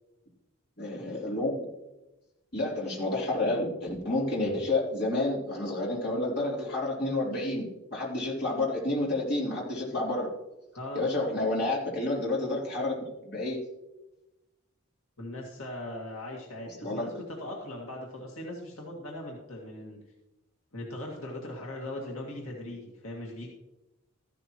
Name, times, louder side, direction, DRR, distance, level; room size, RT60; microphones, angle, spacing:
voice 1, 0.8-1.7 2.5-10.3 10.9-13.0 13.2-13.6 16.8-17.1, left 2 dB, 50° left, -4 dB, 3.4 m, -30 dB
voice 2, 10.7-11.0 15.2-20.0 20.7-23.5, left 1 dB, 75° left, -2 dB, 2.0 m, -39 dB
14.0 x 11.5 x 3.0 m, 0.98 s
head